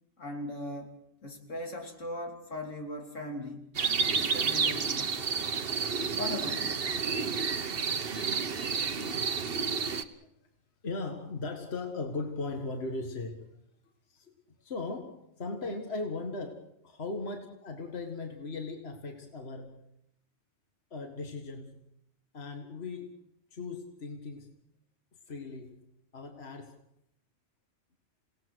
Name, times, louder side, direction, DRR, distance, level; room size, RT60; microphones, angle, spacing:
voice 1, 0.2-1.0 1.2-3.7 4.1-5.1 6.2-6.8, left 1 dB, 85° left, 2 dB, 3.5 m, -39 dB
sound 1, 3.7-10.0, right 5 dB, 50° right, 1.2 m, -30 dB
voice 2, 10.8-13.6 14.1-14.3 14.6-19.8 20.9-21.8 22.3-23.1 23.5-24.6 25.3-25.8 26.1-26.8, left 3 dB, 55° left, 4 dB, 2.0 m, -38 dB
28.5 x 18.0 x 6.3 m, 0.77 s
omnidirectional pair, 1.3 m